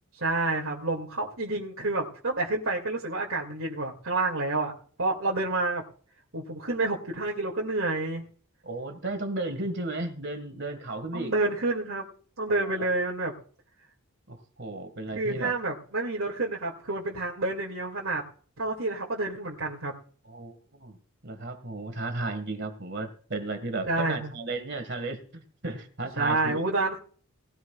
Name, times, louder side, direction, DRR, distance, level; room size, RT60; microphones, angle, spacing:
voice 1, 0.2-4.7 5.0-5.8 6.3-8.2 11.1-12.0 12.4-13.3 15.1-18.2 18.6-19.9 23.8-24.3 26.2-27.0, right 2 dB, 70° right, -2 dB, 2.4 m, -29 dB
voice 2, 8.6-11.3 12.5-12.9 14.3-15.5 20.3-21.0 21.2-26.6, right 2 dB, 55° right, 7 dB, 1.8 m, -34 dB
19.0 x 14.5 x 2.4 m, 0.44 s
head